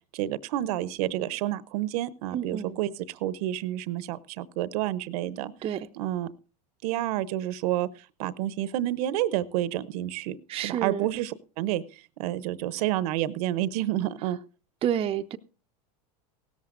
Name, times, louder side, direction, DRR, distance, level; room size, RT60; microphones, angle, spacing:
voice 1, 0.0-5.5 6.0-6.3 6.8-7.9 8.2-14.4, right 13 dB, 65° right, 0.7 m, -29 dB
voice 2, 2.3-2.8 5.6-5.9 10.5-11.1 14.8-15.4, right 10 dB, 30° right, 0.6 m, -29 dB
17.0 x 13.5 x 2.5 m
hypercardioid pair, 105°, 21 cm